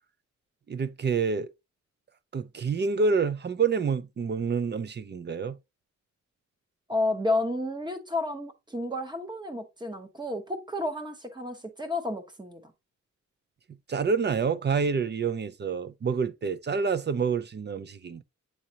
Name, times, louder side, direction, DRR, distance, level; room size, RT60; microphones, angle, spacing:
voice 1, 0.7-1.5 2.3-5.6 13.9-18.2, right 5 dB, 40° right, 0.4 m, -27 dB
voice 2, 6.9-12.6, left 2 dB, 15° right, 1.0 m, -31 dB
8.6 x 3.9 x 2.8 m
wide cardioid pair, 170°, 29 cm